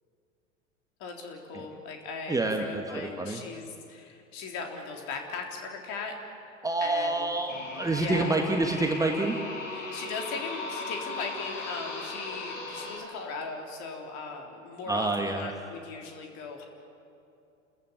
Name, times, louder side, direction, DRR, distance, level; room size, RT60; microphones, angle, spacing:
voice 1, 1.0-6.2 6.8-7.3 8.0-8.3 9.7-16.6, left 4 dB, 45° left, 2 dB, 3.7 m, -38 dB
voice 2, 2.3-3.4 6.6-9.4 14.9-15.5, right 2 dB, 10° right, 3 dB, 1.4 m, -28 dB
sound 1, 7.5-13.0, left 3 dB, 65° left, 4.9 m, -37 dB
30.0 x 14.5 x 8.8 m, 2.7 s
figure-of-eight pair, 85°, 40 cm